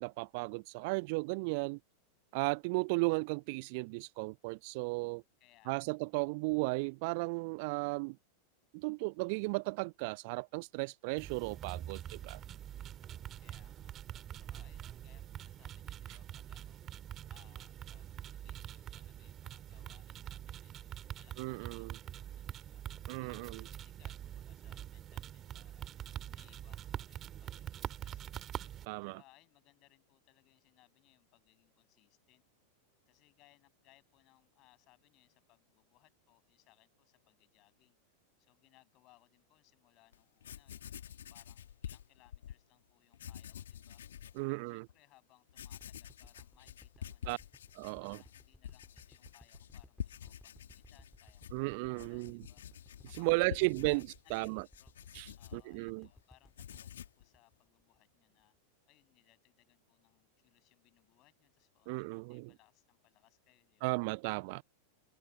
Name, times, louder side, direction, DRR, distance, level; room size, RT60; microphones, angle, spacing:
voice 1, 0.0-1.8 2.3-5.2 5.7-8.2 8.7-12.4 21.4-22.0 23.1-23.7 28.9-29.2 44.4-44.9 47.3-47.4 47.8-48.2 51.5-52.4 53.2-54.6 55.1-56.1 61.9-62.5 63.8-64.6, right 29 dB, 45° right, 0.5 m, -35 dB
voice 2, 1.3-1.8 5.4-6.0 12.0-12.6 13.4-13.9 14.4-16.8 17.3-25.9 26.3-28.5 29.0-32.4 33.1-38.0 38.4-41.0 41.3-44.0 44.5-47.4 47.8-52.6 53.0-55.0 55.3-58.5 58.9-64.0, left 20 dB, 40° left, 7.2 m, -68 dB
sound 1, 11.2-28.8, right 11 dB, 30° right, 2.6 m, -45 dB
Writing, 40.1-40.2 40.4-42.6 43.1-44.4 44.9-45.0 45.5-56.1 56.4-57.2, left 10 dB, 65° left, 3.1 m, -48 dB
sound 2, 45.8-58.1 58.5-58.6, left 1 dB, 5° left, 2.7 m, -60 dB
figure-of-eight pair, 90°, 0 cm